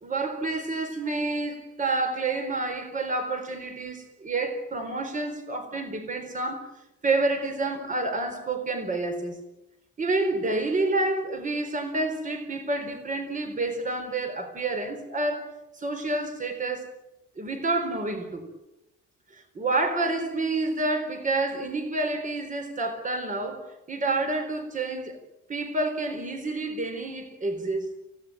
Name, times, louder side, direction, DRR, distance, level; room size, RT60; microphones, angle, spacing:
voice 1, 0.0-6.7 7.0-9.4 10.0-15.5 15.8-16.9 17.4-18.4 19.3-25.2 25.5-27.9, right 2 dB, 25° right, 4.3 m, -29 dB
29.0 x 17.0 x 9.3 m
cardioid pair, 170°, 31 cm